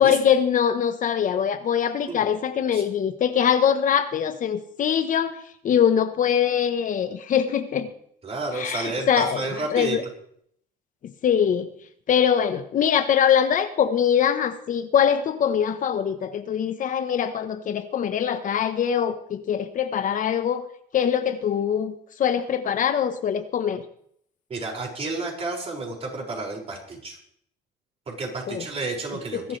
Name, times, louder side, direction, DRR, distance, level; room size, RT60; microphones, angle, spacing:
voice 1, 0.0-5.3 5.6-7.9 8.5-9.4 9.7-10.0 11.2-11.7 12.1-20.6 20.9-23.8 28.5-28.6 29.5-29.6, left 8 dB, 50° left, 9 dB, 1.1 m, -23 dB
voice 2, 8.2-10.0 24.5-27.2 28.1-29.6, right 3 dB, 35° right, -1 dB, 5.9 m, -31 dB
21.5 x 12.0 x 3.3 m, 0.67 s
cardioid pair, 110°, 17 cm